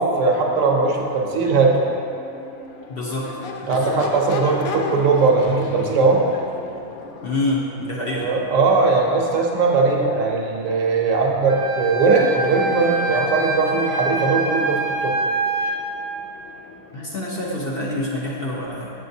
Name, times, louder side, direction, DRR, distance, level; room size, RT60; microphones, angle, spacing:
voice 1, 0.0-1.8 3.7-6.2 8.1-15.2, right 4 dB, 70° right, 0 dB, 1.0 m, -19 dB
Crowd / Race car auto racing / Accelerating revving vroom, 0.8-17.9, left 4 dB, 75° left, 1.0 m, -38 dB
voice 2, 2.9-3.3 3.6-4.0 7.2-8.3 16.9-18.9, left 2 dB, 55° left, -4 dB, 0.7 m, -26 dB
Wind instrument woodwind instrument, 11.5-15.8, right 2 dB, 45° right, 0.7 m, -25 dB
7.4 x 6.5 x 2.7 m, 2.8 s
omnidirectional pair, 1.5 m